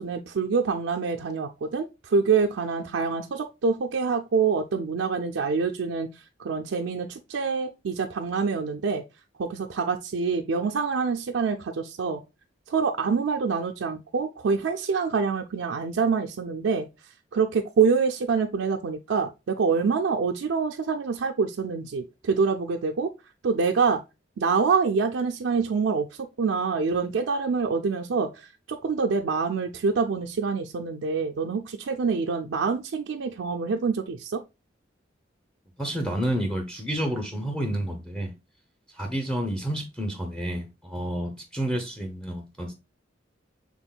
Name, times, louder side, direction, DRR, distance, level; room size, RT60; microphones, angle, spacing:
voice 1, 0.0-9.0 9.4-12.2 12.7-16.9 17.3-23.1 23.4-24.0 24.4-34.4, right 5 dB, 85° right, 0.4 m, -26 dB
voice 2, 35.8-38.3 38.9-42.7, right 1 dB, 5° left, 0.6 m, -30 dB
6.1 x 3.5 x 2.2 m
head